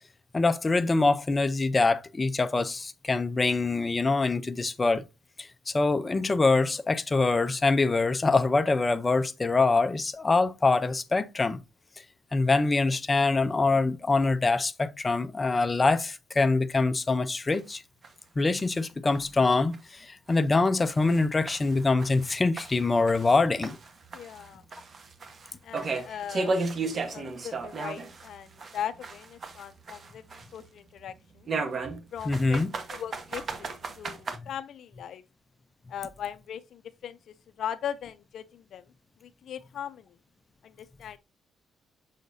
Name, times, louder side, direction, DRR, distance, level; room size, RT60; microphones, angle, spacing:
voice 1, 0.3-5.1 5.4-11.6 12.3-17.8 18.4-23.8 32.2-32.7, left 3 dB, 25° left, 0.6 m, -24 dB
sound 1, 17.5-17.6 18.0-18.1 18.6-18.7 19.1-19.2 19.7-19.8 20.3-20.4 20.9-23.4 23.6-28.3 28.6-30.6 31.5-34.4, right 3 dB, 45° right, 1.2 m, -34 dB
voice 2, 24.1-24.6 25.6-26.5 27.0-31.5 32.1-32.6 32.9-33.7 34.0-35.2 35.9-37.2 37.6-38.9 39.2-40.1 40.6-41.2, left 9 dB, 70° left, 0.4 m, -39 dB
6.4 x 6.4 x 2.7 m
cardioid pair, 90°, 0 cm